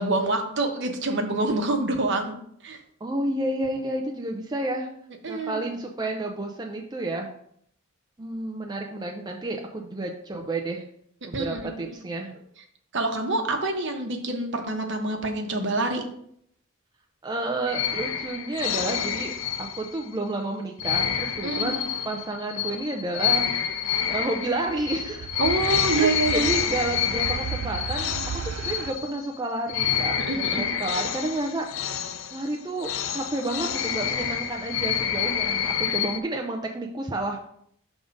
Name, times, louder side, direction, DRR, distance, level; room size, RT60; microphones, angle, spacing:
voice 1, 0.0-2.3 2.6-2.8 5.2-5.6 11.3-11.7 12.2-12.4 12.9-16.0 21.4-21.7 25.4-26.5 30.2-30.7, right 2 dB, 55° right, 4 dB, 1.0 m, -26 dB
voice 2, 3.0-4.9 5.3-7.3 8.2-10.8 11.3-12.3 17.2-23.5 24.1-25.3 25.6-28.1 28.4-31.8 32.3-37.4, right 2 dB, 20° right, 1 dB, 0.5 m, -30 dB
sound 1, 17.7-20.1 20.8-29.4 29.7-36.2, left 9 dB, 75° left, 0.5 m, -28 dB
sound 2, 24.6-28.9, right 7 dB, 80° right, 0.4 m, -35 dB
6.5 x 3.6 x 5.2 m, 0.69 s
head